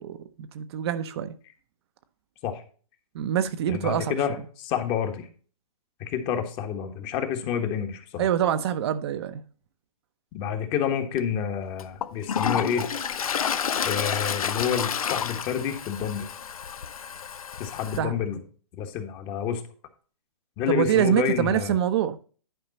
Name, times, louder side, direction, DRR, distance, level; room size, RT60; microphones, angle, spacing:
voice 1, 0.0-1.4 3.1-4.1 8.2-9.4 18.0-18.2 20.7-22.2, right 10 dB, 45° right, 0.7 m, -25 dB
voice 2, 3.7-5.3 6.0-8.3 10.3-12.9 13.8-16.3 17.6-18.4 18.8-19.6 20.6-21.7, left 8 dB, 30° left, 1.4 m, -29 dB
Toilet flush, 11.1-11.2 11.8-18.0, left 7 dB, 75° left, 0.8 m, -30 dB
10.5 x 5.4 x 4.1 m
hypercardioid pair, 135°, 18 cm